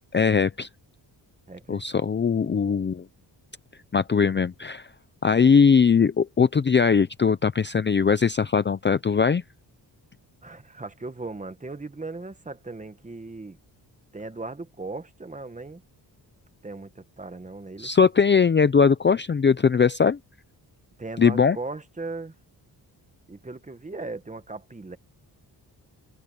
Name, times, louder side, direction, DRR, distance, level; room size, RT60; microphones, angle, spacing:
voice 1, 0.1-0.7 1.7-3.0 3.9-4.9 5.2-9.4 17.8-20.2 21.2-21.6, left 6 dB, 25° left, 0.6 m, -20 dB
voice 2, 1.5-1.9 10.4-13.6 14.1-15.8 16.6-17.9 21.0-22.3 23.3-25.0, right 3 dB, 20° right, 1.4 m, -37 dB
cardioid pair, 105°, 41 cm